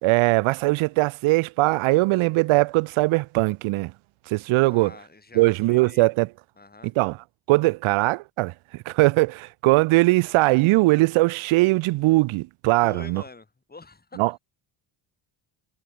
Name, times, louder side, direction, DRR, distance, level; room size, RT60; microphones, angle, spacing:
voice 1, 0.0-3.9 4.3-4.9 5.4-6.3 7.0-7.2 7.5-13.2 14.2-14.4, right 21 dB, 85° right, 0.5 m, -20 dB
voice 2, 4.7-6.0 6.6-6.9 12.8-14.2, left 3 dB, 20° left, 4.4 m, -45 dB
cardioid pair, 115°, 47 cm